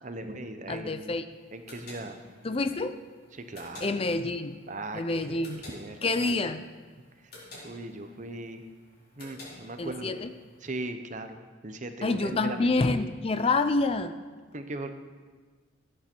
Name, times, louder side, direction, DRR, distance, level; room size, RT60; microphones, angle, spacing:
voice 1, 0.0-1.2 1.5-2.2 3.3-4.2 4.7-6.5 7.2-7.3 7.6-8.7 9.2-10.2 10.6-11.4 11.6-12.7 14.5-14.9, right 2 dB, 40° right, 8 dB, 0.9 m, -39 dB
voice 2, 0.7-1.2 2.4-3.0 3.8-4.6 4.9-5.6 6.0-6.6 9.8-10.3 12.0-14.1, left 3 dB, 30° left, 10 dB, 0.4 m, -27 dB
sound 1, 1.3-10.8, left 2 dB, 50° left, 4.5 m, -51 dB
18.0 x 8.7 x 4.5 m, 1.4 s
head